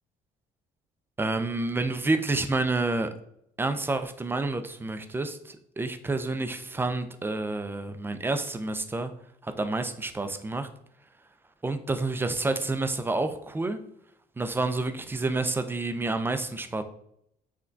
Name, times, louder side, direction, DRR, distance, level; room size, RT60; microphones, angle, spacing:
voice 1, 1.2-3.1 3.6-9.1 9.4-10.7 11.6-13.8 14.4-16.8, right 2 dB, 15° right, 0.3 m, -29 dB
5.7 x 2.2 x 2.5 m
cardioid pair, 110°, 17 cm